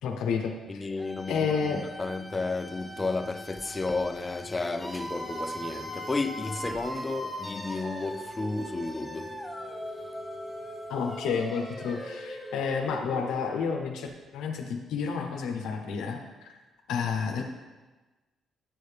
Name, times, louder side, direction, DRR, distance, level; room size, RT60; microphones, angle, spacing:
voice 1, 0.0-0.9 1.3-1.9 10.9-16.6 16.9-17.4, left 6 dB, 85° left, 0.7 m, -30 dB
voice 2, 0.7-9.4, left 3 dB, 25° left, 0.4 m, -32 dB
sound 1, 1.0-13.8, equal, 5° right, 0.8 m, -40 dB
9.1 x 4.7 x 3.3 m
cardioid pair, 90°, 0 cm